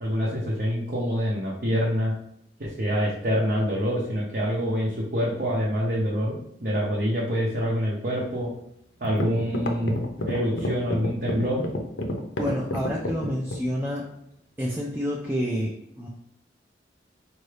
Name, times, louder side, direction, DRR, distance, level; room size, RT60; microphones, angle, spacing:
voice 1, 0.0-2.1 2.6-8.5 9.0-11.6, equal, 55° right, -5 dB, 0.7 m, -26 dB
sound 1, 8.6-8.7 9.0-13.7, left 1 dB, 85° left, 0.6 m, -29 dB
voice 2, 12.4-14.1 14.6-16.1, equal, 10° right, -4 dB, 0.4 m, -28 dB
4.6 x 2.6 x 3.3 m, 0.76 s
head